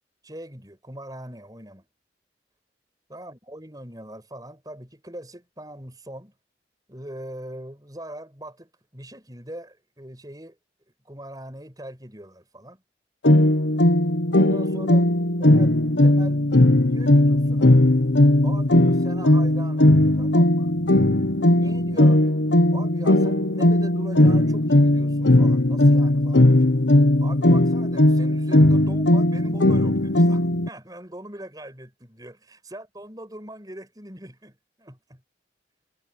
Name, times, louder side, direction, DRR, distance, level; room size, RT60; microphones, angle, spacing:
voice 1, 0.2-1.9 3.1-6.3 6.9-10.6 11.0-12.8 14.3-15.1 15.5-15.7 16.0-16.4 16.8-17.7 18.4-20.7 21.5-22.3 22.7-26.6 27.2-35.2, right 1 dB, 20° right, 7.9 m, -41 dB
sound 1, 13.2-30.7, left 1 dB, 90° left, 1.3 m, -18 dB
head